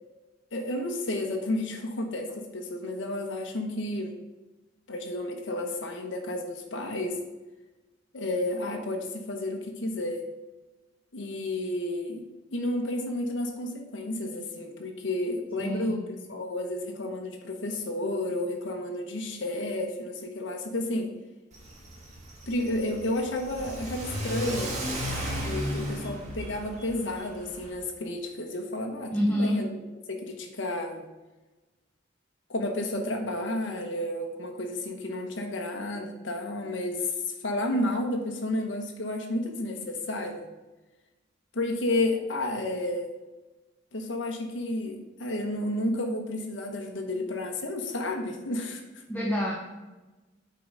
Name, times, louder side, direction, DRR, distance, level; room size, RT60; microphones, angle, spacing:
voice 1, 0.5-4.1 4.9-7.2 8.1-10.2 11.1-12.2 12.5-21.1 22.5-24.7 25.4-29.8 30.1-31.0 32.5-40.5 41.5-43.2 43.9-49.0, left 1 dB, 75° left, 3 dB, 1.0 m, -31 dB
voice 2, 15.6-16.0 29.1-29.6 49.1-49.6, equal, 10° left, -3 dB, 0.8 m, -27 dB
Car / Accelerating revving vroom, 21.5-27.7, equal, 40° right, 1.8 m, -35 dB
8.3 x 3.9 x 5.3 m, 1.1 s
head